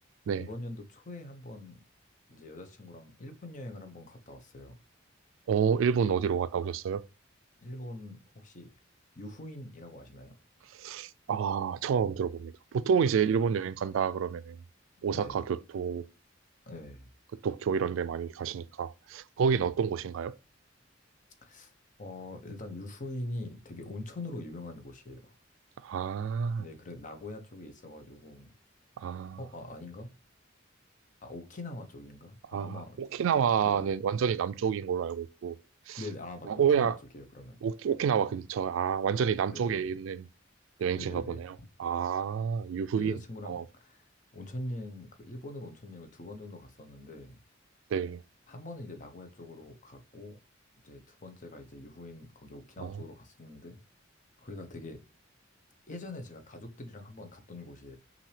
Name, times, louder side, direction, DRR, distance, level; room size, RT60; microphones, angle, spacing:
voice 1, 0.4-1.8 2.3-4.8 7.6-8.7 9.1-10.3 13.1-13.3 15.1-15.5 16.7-17.1 19.5-19.7 21.4-21.7 22.0-25.3 26.6-28.5 29.4-30.1 31.2-33.0 33.6-33.9 36.0-37.6 39.2-39.9 40.9-41.4 42.9-47.4 48.5-50.4 50.8-53.8 54.4-55.0 55.9-58.0, left 1 dB, 40° left, 0.8 m, -43 dB
voice 2, 5.5-7.0 10.8-14.6 15.0-16.1 17.4-20.3 25.8-26.6 29.0-29.4 32.5-35.6 35.9-36.0 36.5-37.0 37.6-40.3 40.8-41.5 41.8-43.6 47.9-48.2 52.8-53.0, right 7 dB, 80° right, 0.3 m, -29 dB
5.7 x 2.7 x 3.2 m
head